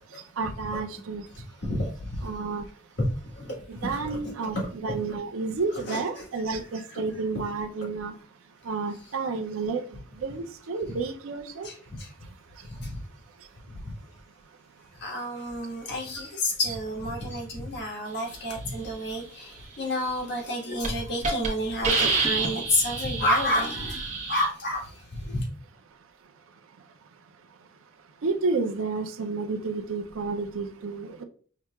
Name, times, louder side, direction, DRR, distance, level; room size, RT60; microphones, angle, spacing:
voice 1, 0.4-1.2 2.2-2.6 3.7-8.1 8.7-9.8 10.2-11.7 28.2-31.2, right 4 dB, 80° right, 6 dB, 0.5 m, -30 dB
voice 2, 1.6-2.2 3.0-3.1 3.3-4.7 5.9-6.0 11.6-11.7 12.0-12.1 12.8-12.9 13.7-13.8 15.0-25.4, left 1 dB, 55° left, -3 dB, 1.4 m, -30 dB
Hiss, 20.2-20.5 20.8-20.9 21.2-21.5 21.8-24.4, right 4 dB, 35° right, 0.9 m, -27 dB
5.7 x 2.8 x 2.2 m, 0.43 s
head